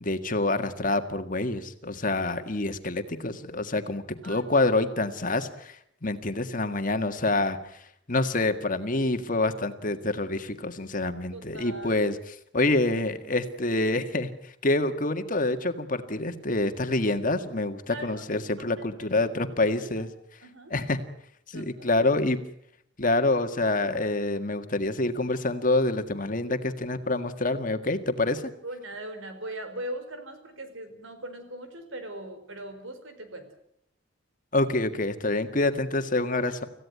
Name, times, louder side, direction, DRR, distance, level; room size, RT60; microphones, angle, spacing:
voice 1, 0.0-5.8 6.0-7.6 8.1-20.1 20.7-21.0 21.5-22.4 23.0-28.5 34.5-36.7, left 2 dB, 45° left, 8 dB, 1.8 m, -27 dB
voice 2, 11.3-12.1 17.9-18.2 18.6-18.8 20.0-20.1 20.4-20.7 21.5-21.9 28.6-33.5, right 1 dB, 85° right, 9 dB, 4.7 m, -40 dB
26.5 x 16.0 x 9.5 m, 0.73 s
head